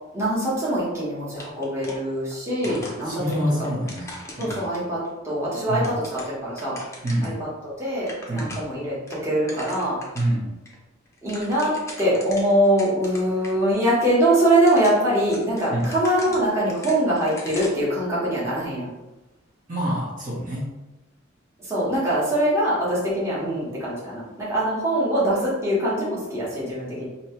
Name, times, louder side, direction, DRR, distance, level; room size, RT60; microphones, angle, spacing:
voice 1, 0.1-3.2 4.4-6.8 7.2-8.9 9.2-10.0 11.2-18.9 21.6-27.1, right 1 dB, 15° right, -8 dB, 1.2 m, -23 dB
sound 1, 1.4-2.4 2.6-5.1 5.6-7.4 7.7-7.8 8.0-8.8 9.1-10.3 10.6-10.7 11.0-13.5 13.8-13.9 14.5-17.9, left 1 dB, 15° left, 0.7 m, -41 dB
voice 2, 2.6-4.6 5.7-5.9 7.0-7.4 8.3-8.6 10.1-10.5 15.7-15.9 19.7-20.7, right 1 dB, 40° right, -6 dB, 1.2 m, -27 dB
3.1 x 2.8 x 4.4 m, 1.0 s
head